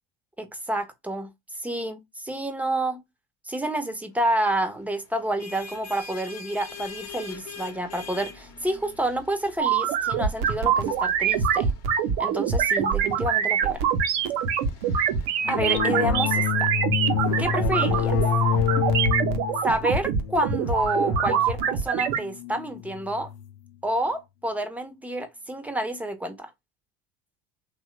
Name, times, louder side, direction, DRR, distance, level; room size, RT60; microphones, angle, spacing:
voice 1, 0.4-1.3 1.6-3.0 3.5-11.7 12.2-13.8 15.5-16.7 17.4-18.2 19.6-23.3 23.8-26.5, right 1 dB, 5° right, 0.7 m, -29 dB
sound 1, 5.1-16.5, left 4 dB, 45° left, 0.9 m, -45 dB
sound 2, 9.6-22.2, right 7 dB, 65° right, 0.8 m, -24 dB
sound 3, 15.4-23.6, left 9 dB, 70° left, 0.5 m, -28 dB
3.0 x 2.2 x 3.1 m
hypercardioid pair, 80°, 37 cm